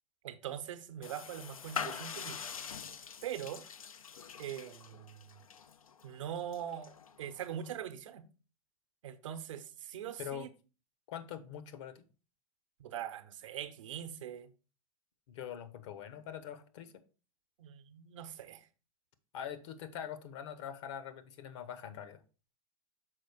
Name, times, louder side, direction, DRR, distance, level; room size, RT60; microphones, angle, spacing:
voice 1, 0.2-2.4 3.2-3.6 4.4-5.5 6.0-8.2 9.0-10.5 12.8-14.5 17.6-18.7, right 10 dB, 60° right, 0.9 m, -42 dB
sound 1, 1.0-7.7, left 7 dB, 80° left, 0.5 m, -44 dB
voice 2, 11.1-12.1 15.3-16.9 19.3-22.2, left 9 dB, 55° left, 1.0 m, -43 dB
6.3 x 4.7 x 4.6 m
figure-of-eight pair, 90°, 18 cm